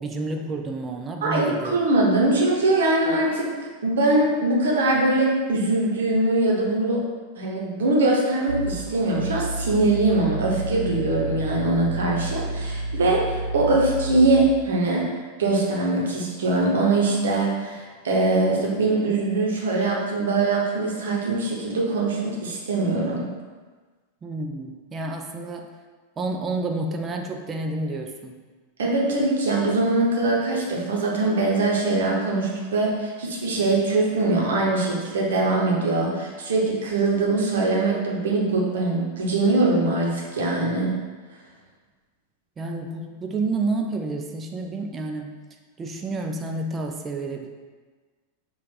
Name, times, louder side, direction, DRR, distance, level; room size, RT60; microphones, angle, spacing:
voice 1, 0.0-1.8 24.2-25.7 26.2-28.4 42.6-45.3 45.8-47.5, right 2 dB, 20° right, 3 dB, 0.5 m, -29 dB
voice 2, 1.2-3.5 3.8-7.0 7.4-15.1 15.4-23.3 28.8-40.9, right 2 dB, 65° right, -3 dB, 0.9 m, -22 dB
sound 1, 8.5-14.6, right 1 dB, 90° left, 0.6 m, -30 dB
5.2 x 2.4 x 4.0 m, 1.4 s
figure-of-eight pair, 90°, 0 cm